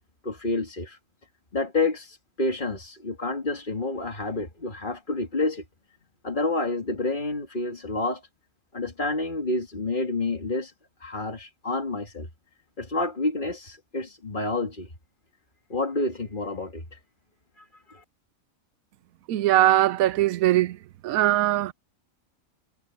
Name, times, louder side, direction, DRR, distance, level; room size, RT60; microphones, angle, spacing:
voice 1, 0.2-1.0 1.5-5.6 6.2-8.2 8.7-10.7 11.0-12.3 12.8-14.9 15.7-17.0 17.6-18.0, left 2 dB, 35° left, 2.4 m, -29 dB
voice 2, 19.3-20.7 21.0-21.7, right 14 dB, 80° right, 1.1 m, -21 dB
omnidirectional pair, 1.5 m